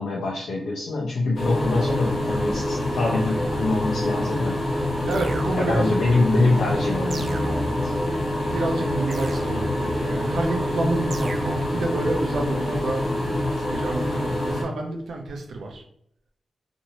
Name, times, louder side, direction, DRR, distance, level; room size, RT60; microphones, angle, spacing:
voice 1, 0.0-4.6 5.6-8.0, left 2 dB, 85° left, -3 dB, 0.6 m, -24 dB
sound 1, 1.4-14.6, left 1 dB, 35° left, 0.9 m, -26 dB
voice 2, 5.0-6.0 8.5-13.0 13.5-15.8, right 2 dB, 80° right, 1 dB, 0.6 m, -29 dB
sound 2, 5.1-6.0 7.1-8.0 9.1-10.0 11.1-12.0, right 2 dB, 40° right, 0.3 m, -36 dB
3.0 x 2.6 x 2.7 m, 0.72 s
wide cardioid pair, 165°, 0 cm